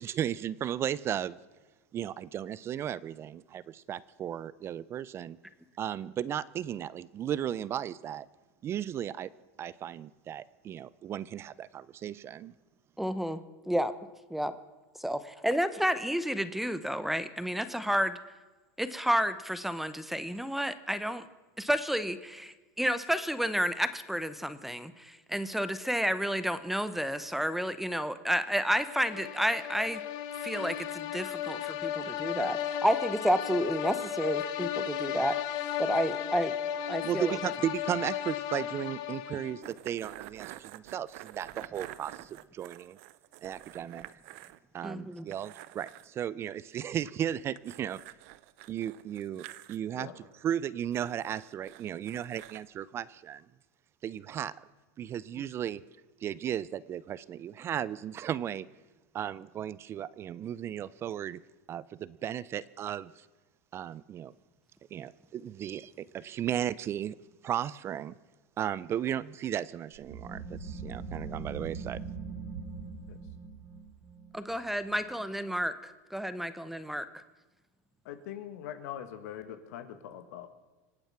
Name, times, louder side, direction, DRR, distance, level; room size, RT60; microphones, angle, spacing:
voice 1, 0.0-1.4 1.9-5.4 5.8-8.3 8.6-9.3 9.6-12.5 37.0-43.0 43.4-44.1 44.7-48.0 48.7-50.1 50.4-53.4 54.0-54.5 55.0-55.8 56.2-58.7 59.1-61.4 61.7-63.1 63.7-64.3 64.9-67.2 67.4-68.1 68.6-72.0, right 10 dB, 30° right, 19 dB, 0.5 m, -35 dB
voice 2, 13.0-13.4 13.7-13.9 14.3-14.5 15.0-18.2 18.8-21.2 21.6-30.0 30.4-36.5 36.9-37.4 44.8-45.3 74.3-77.2, equal, ahead, 13 dB, 0.7 m, -31 dB
sound 1, 28.8-39.7, left 10 dB, 50° left, 0.9 m, -35 dB
sound 2, 39.6-44.6 44.9-45.0 45.3-46.1 47.6-49.8 50.9-52.6, right 17 dB, 65° right, 0.7 m, -48 dB
sound 3, 69.9-75.3, right 4 dB, 80° right, 4.1 m, -41 dB
voice 3, 78.0-80.5, left 10 dB, 75° left, 10 dB, 1.8 m, -42 dB
26.0 x 8.9 x 5.9 m, 1.2 s
supercardioid pair, 135°, 9 cm